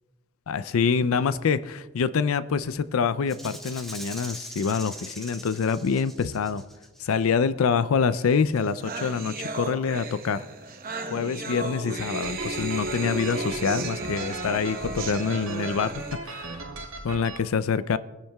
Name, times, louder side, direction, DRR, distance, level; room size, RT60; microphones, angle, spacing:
voice 1, 0.5-6.6 7.0-10.4 11.1-16.6 17.0-18.0, left 6 dB, 80° left, 0.4 m, -26 dB
Rattle (instrument), 3.3-7.1, right 1 dB, ahead, 1.1 m, -42 dB
sound 1, 8.3-8.4 8.5-16.1, right 2 dB, 40° right, 0.9 m, -35 dB
sound 2, 12.2-17.4, right 3 dB, 80° right, 1.3 m, -37 dB
23.5 x 10.0 x 2.3 m
head